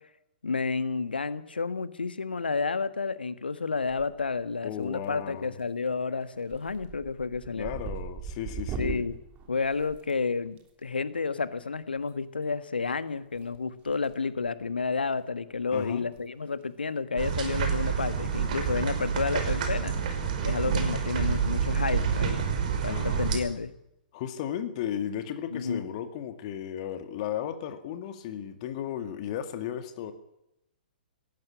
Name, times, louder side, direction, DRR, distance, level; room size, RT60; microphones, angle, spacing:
voice 1, 0.4-7.7 8.8-9.2 9.5-19.9 20.4-22.4 22.8-23.7 25.5-25.8, left 4 dB, 75° left, 13 dB, 1.5 m, -31 dB
sound 1, 3.8-4.4 4.7-5.2 5.6-5.9 6.2-10.6 12.0-12.1 13.3-14.1 14.4-14.6 15.2-15.3 15.5-15.6 16.0-16.2 16.5-16.6 18.1-18.4, right 6 dB, 25° right, 3.4 m, -40 dB
voice 2, 4.6-5.5 7.5-9.0 15.7-16.1 22.9-23.2 24.1-30.1, left 10 dB, 40° left, 8 dB, 2.1 m, -35 dB
sound 2, 17.2-23.4, right 7 dB, 50° right, 5.2 m, -28 dB
18.0 x 14.5 x 9.8 m, 0.83 s
figure-of-eight pair, 115°, 5 cm